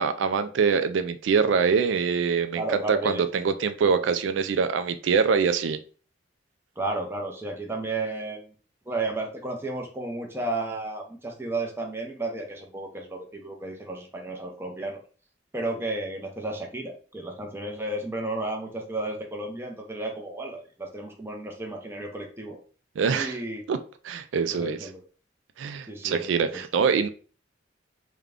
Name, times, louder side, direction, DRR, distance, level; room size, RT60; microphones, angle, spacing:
voice 1, 0.0-5.8 23.0-23.4 23.7-23.8 24.0-24.8 25.6-27.1, right 5 dB, 85° right, 10 dB, 0.3 m, -24 dB
voice 2, 2.5-3.4 6.8-8.5 8.9-15.0 15.5-22.6 23.1-23.6 24.5-25.0 25.9-26.6, right 2 dB, 15° right, 2 dB, 0.6 m, -33 dB
3.6 x 2.2 x 3.5 m, 0.39 s
head